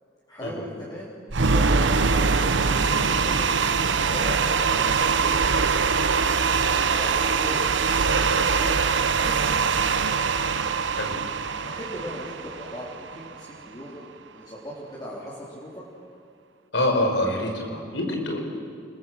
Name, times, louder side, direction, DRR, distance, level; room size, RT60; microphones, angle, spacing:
voice 1, 0.3-5.4 6.8-8.8 9.2-9.9 11.6-14.0 14.3-15.8, equal, 20° left, -7 dB, 4.3 m, -39 dB
sound 1, 1.3-13.5, right 5 dB, 75° right, 1.0 m, -23 dB
voice 2, 16.7-18.4, left 1 dB, 75° left, 2 dB, 5.1 m, -25 dB
29.5 x 21.5 x 7.8 m, 2.4 s
head